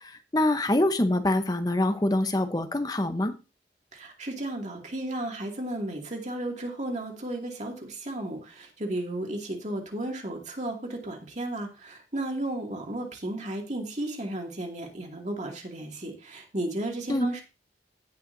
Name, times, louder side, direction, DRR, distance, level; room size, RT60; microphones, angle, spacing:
voice 1, 0.0-3.3 17.1-17.3, left 1 dB, 20° left, 9 dB, 0.8 m, -25 dB
voice 2, 3.9-17.4, right 1 dB, 40° right, 1 dB, 2.3 m, -34 dB
17.0 x 5.7 x 2.7 m, 0.31 s
head